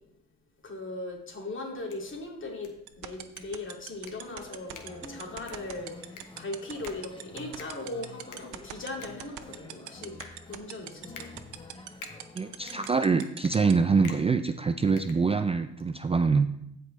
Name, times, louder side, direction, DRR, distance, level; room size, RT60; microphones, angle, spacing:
voice 1, 0.6-10.2 10.4-11.3, left 2 dB, 40° left, 1 dB, 2.4 m, -39 dB
sound 1, 1.7-15.8, left 6 dB, 80° left, 1.5 m, -52 dB
sound 2, 2.9-13.7, right 15 dB, 90° right, 0.7 m, -39 dB
sound 3, 4.2-12.8, left 2 dB, 15° left, 1.0 m, -49 dB
voice 2, 12.3-16.5, right 4 dB, 20° right, 9 dB, 0.4 m, -25 dB
15.5 x 5.3 x 3.2 m, 0.78 s
cardioid pair, 90°, 30 cm